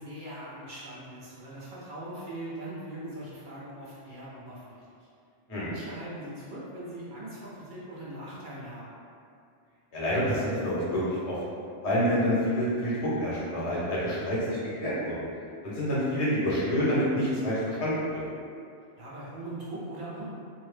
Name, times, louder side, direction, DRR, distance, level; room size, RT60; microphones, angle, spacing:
voice 1, 0.0-4.9 5.5-8.9 19.0-20.2, right 1 dB, 55° right, -8 dB, 0.8 m, -41 dB
voice 2, 9.9-11.4 11.8-15.3 15.6-18.2, equal, 90° left, -8 dB, 1.1 m, -27 dB
2.7 x 2.0 x 3.1 m, 2.4 s
omnidirectional pair, 1.1 m